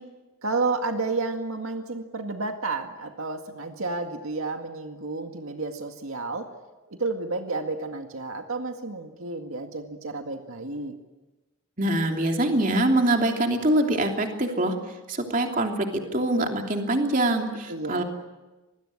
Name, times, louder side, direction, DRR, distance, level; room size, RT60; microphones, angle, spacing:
voice 1, 0.4-6.5 6.9-10.9 17.7-18.0, right 3 dB, 80° right, 5 dB, 2.0 m, -31 dB
voice 2, 11.8-14.8 15.1-18.0, right 1 dB, 40° right, 3 dB, 3.1 m, -24 dB
26.5 x 20.5 x 9.9 m, 1.1 s
head